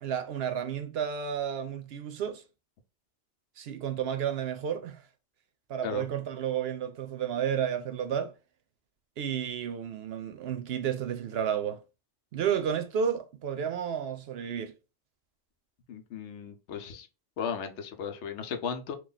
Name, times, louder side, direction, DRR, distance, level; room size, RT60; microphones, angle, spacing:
voice 1, 0.0-2.4 3.6-5.0 5.7-8.3 9.2-11.8 12.3-14.7, right 8 dB, 65° right, 0.8 m, -31 dB
voice 2, 15.9-17.1 17.4-19.0, left 7 dB, 80° left, 0.9 m, -36 dB
2.9 x 2.3 x 3.8 m
omnidirectional pair, 1.2 m